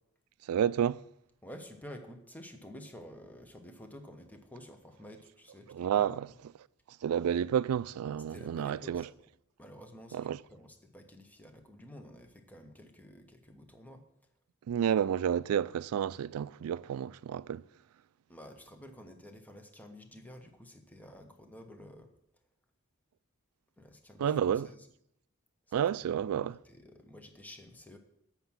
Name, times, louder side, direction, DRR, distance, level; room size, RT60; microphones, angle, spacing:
voice 1, 0.5-1.0 5.7-6.3 7.0-9.1 10.1-10.4 14.7-17.6 24.2-24.7 25.7-26.6, right 9 dB, 90° right, 0.3 m, -30 dB
voice 2, 1.4-6.4 8.3-9.2 9.6-14.1 18.3-22.1 23.8-24.9 25.8-28.0, left 1 dB, 10° left, 0.9 m, -51 dB
7.9 x 5.8 x 7.1 m
head